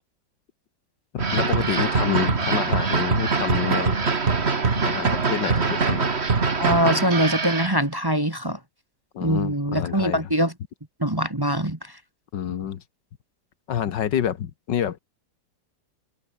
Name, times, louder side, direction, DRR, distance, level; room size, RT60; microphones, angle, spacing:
voice 1, 1.1-4.1 4.8-6.1 9.1-10.3 12.3-12.8 13.7-15.0, left 9 dB, 80° left, 1.9 m, -28 dB
sound 1, 1.2-7.8, right 4 dB, 35° right, 2.1 m, -23 dB
voice 2, 6.6-8.6 9.2-10.5 11.0-11.8, equal, 15° right, 1.6 m, -23 dB
omnidirectional pair, 1.9 m